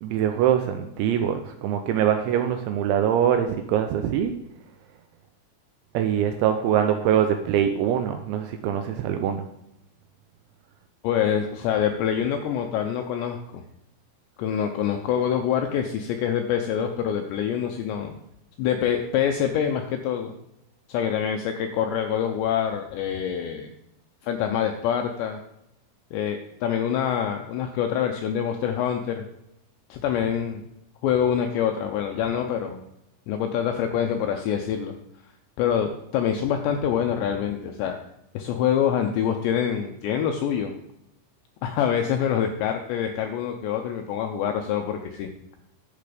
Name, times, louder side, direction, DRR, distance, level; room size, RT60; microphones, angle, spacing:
voice 1, 0.0-4.3 5.9-9.4, right 9 dB, 85° right, 7 dB, 2.7 m, -23 dB
voice 2, 11.0-13.6 14.4-18.2 18.6-20.3 20.9-23.7 24.2-25.4 26.1-29.2 29.9-30.6 31.0-32.8 33.3-34.9 35.6-37.9 38.3-40.7 41.6-45.3, left 8 dB, 85° left, 5 dB, 2.5 m, -25 dB
11.0 x 6.8 x 5.0 m, 0.83 s
omnidirectional pair, 5.8 m